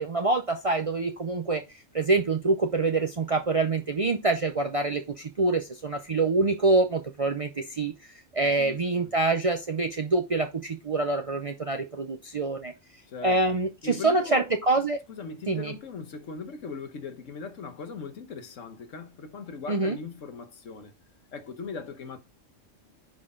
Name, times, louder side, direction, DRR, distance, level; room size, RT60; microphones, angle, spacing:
voice 1, 0.0-1.6 1.9-7.9 8.3-12.7 13.2-15.0 15.5-15.7 19.7-20.0, right 3 dB, 40° right, 0.5 m, -26 dB
voice 2, 8.4-9.1 13.1-13.4 13.8-14.5 15.1-20.9 21.3-22.2, left 4 dB, 75° left, 1.4 m, -39 dB
9.7 x 4.1 x 3.7 m
omnidirectional pair, 1.3 m